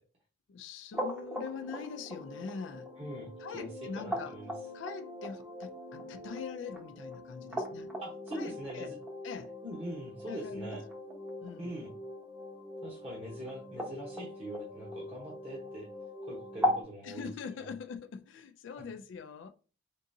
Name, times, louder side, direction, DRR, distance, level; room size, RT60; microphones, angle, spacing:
voice 1, 0.5-2.9 3.4-4.4 4.7-7.9 8.3-8.9 9.2-9.5 10.3-10.8 11.4-11.7 17.0-19.5, left 5 dB, 80° left, 0.4 m, -43 dB
sound 1, 0.9-16.8, left 1 dB, 10° right, 0.7 m, -40 dB
voice 2, 3.0-3.7 4.0-4.5 8.0-9.0 9.6-10.8 11.6-11.9 12.8-15.9 16.2-17.3 17.6-17.7, right 1 dB, 30° right, 1.0 m, -42 dB
3.8 x 3.6 x 2.6 m
head